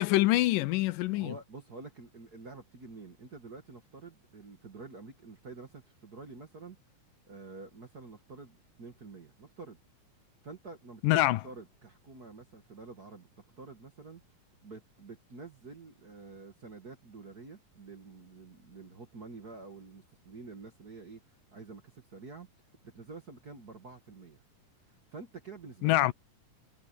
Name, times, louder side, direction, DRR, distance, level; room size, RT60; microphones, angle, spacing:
voice 1, 0.0-1.3 11.0-11.4 25.8-26.1, left 17 dB, 85° left, 2.3 m, -25 dB
voice 2, 1.1-6.8 7.3-9.8 10.4-13.3 13.6-14.2 14.6-22.5 22.8-24.4 25.1-26.0, right 4 dB, 40° right, 1.6 m, -48 dB
omnidirectional pair, 3.8 m